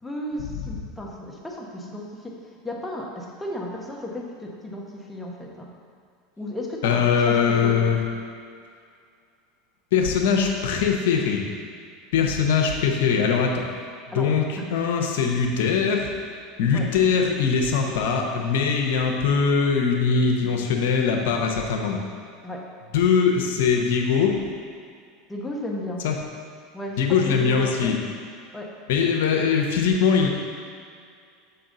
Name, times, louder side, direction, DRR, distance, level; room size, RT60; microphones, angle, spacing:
voice 1, 0.0-2.4 2.6-5.7 6.4-7.9 14.1-14.3 14.6-14.7 16.7-16.9 22.4-22.6 25.3-26.0 26.7-27.9 28.5-28.7, left 1 dB, 10° left, -2 dB, 1.1 m, -34 dB
voice 2, 6.8-8.0 9.9-11.4 12.1-13.6 14.1-16.1 16.6-22.0 22.9-24.4 26.0-26.1 27.0-28.0 28.9-30.3, left 6 dB, 75° left, 2 dB, 0.8 m, -21 dB
6.8 x 4.7 x 3.9 m, 2.2 s
hypercardioid pair, 105°, 0 cm